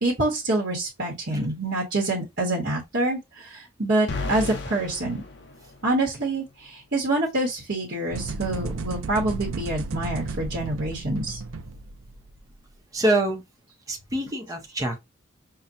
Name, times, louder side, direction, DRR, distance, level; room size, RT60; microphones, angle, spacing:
voice 1, 0.0-5.2 5.8-11.4, right 2 dB, 55° right, 1.2 m, -26 dB
sound 1, 4.1-6.2, left 3 dB, 55° left, 0.7 m, -34 dB
sound 2, 8.1-12.4, right 3 dB, 85° right, 0.5 m, -34 dB
voice 2, 12.9-13.4 13.9-15.0, right 1 dB, 15° right, 0.8 m, -25 dB
5.7 x 2.2 x 2.6 m
head